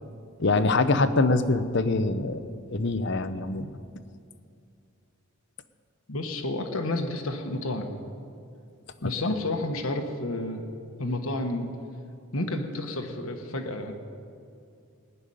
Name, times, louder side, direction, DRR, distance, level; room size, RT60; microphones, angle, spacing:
voice 1, 0.4-3.7, left 3 dB, 50° left, 11 dB, 0.7 m, -24 dB
voice 2, 6.1-7.9 9.0-10.6 11.0-11.7 12.3-13.9, left 2 dB, 70° left, 3 dB, 1.3 m, -30 dB
18.5 x 7.0 x 10.0 m, 2.5 s
head